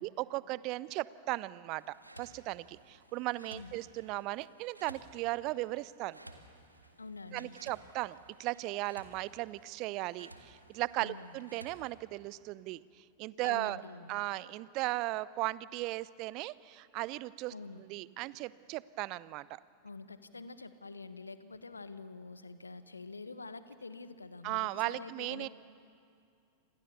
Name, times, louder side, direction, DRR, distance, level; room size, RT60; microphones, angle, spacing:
voice 1, 0.0-1.8 2.2-6.2 7.3-12.8 13.2-13.8 14.1-19.6 24.4-25.5, right 19 dB, 40° right, 19 dB, 0.6 m, -37 dB
sound 1, 1.7-11.9, right 1 dB, 85° right, 1.8 m, -56 dB
voice 2, 7.0-7.6 11.0-11.4 13.4-14.2 17.5-17.8 19.8-25.5, left 3 dB, 80° left, 12 dB, 1.3 m, -46 dB
28.5 x 26.5 x 7.0 m, 2.4 s
figure-of-eight pair, 90°, 0 cm